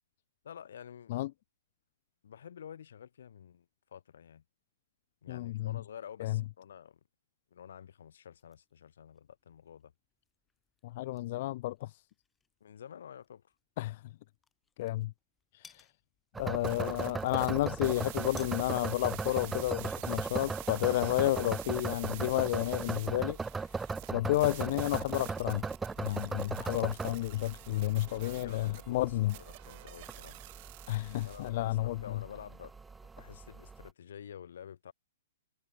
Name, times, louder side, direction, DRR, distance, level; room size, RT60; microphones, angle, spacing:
voice 1, 0.4-1.2 2.2-3.7 3.9-4.4 5.2-7.0 7.5-9.9 12.6-13.5 27.7-30.4 31.2-32.7 33.2-34.9, left 8 dB, 70° left, 5.3 m, -50 dB
voice 2, 5.3-5.8 6.2-6.4 10.8-12.0 13.8-14.0 14.8-15.1 15.5-15.9 16.4-23.7 24.1-25.6 26.0-29.3 30.9-32.0, left 16 dB, 45° left, 0.3 m, -31 dB
sound 1, 8.4-26.4, left 5 dB, 10° left, 1.8 m, -65 dB
sound 2, 16.3-33.9, right 4 dB, 5° right, 0.8 m, -38 dB
sound 3, 16.6-31.5, right 23 dB, 40° right, 1.0 m, -49 dB
hypercardioid pair, 155°, 0 cm